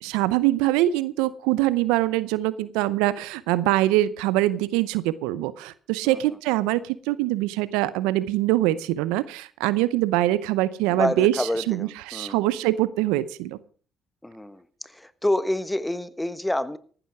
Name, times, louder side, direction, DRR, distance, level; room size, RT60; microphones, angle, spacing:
voice 1, 0.0-13.6, right 15 dB, 80° right, 0.6 m, -24 dB
voice 2, 10.9-12.4 14.2-14.6 14.9-16.8, left 1 dB, 10° left, 1.2 m, -27 dB
14.5 x 12.0 x 4.8 m
hypercardioid pair, 50°, 0 cm